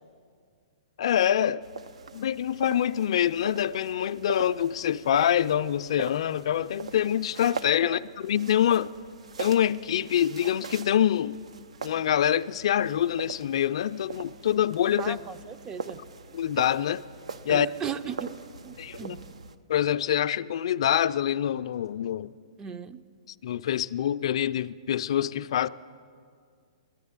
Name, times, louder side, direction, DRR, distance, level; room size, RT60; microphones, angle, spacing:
voice 1, 1.0-1.6 2.1-8.9 9.4-11.4 11.8-15.2 16.3-17.0 17.5-17.7 18.8-19.2 19.7-22.3 23.4-25.7, left 10 dB, 65° left, 0.3 m, -25 dB
sound 1, 1.6-19.6, right 5 dB, 85° right, 0.6 m, -42 dB
voice 2, 15.0-16.0 17.5-18.3 18.6-19.2 22.6-23.0, right 7 dB, 20° right, 0.4 m, -36 dB
10.5 x 9.4 x 9.5 m
hypercardioid pair, 145°, 3 cm